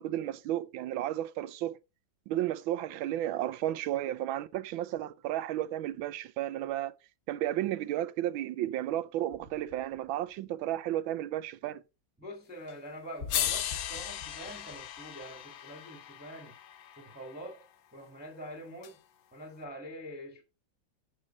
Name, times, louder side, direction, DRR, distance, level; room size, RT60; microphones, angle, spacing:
voice 1, 0.0-1.8 2.3-6.9 7.3-11.8, right 13 dB, 85° right, 1.4 m, -33 dB
sound 1, 9.3-10.7 13.2-15.7, left 4 dB, 50° left, 2.3 m, -47 dB
voice 2, 12.2-16.5 17.0-17.6 17.9-19.0 19.3-20.4, equal, 5° right, 1.3 m, -45 dB
sound 2, 12.7-12.8 13.3-17.5 18.8-18.9, left 11 dB, 80° left, 1.5 m, -37 dB
7.6 x 6.4 x 4.0 m
omnidirectional pair, 2.1 m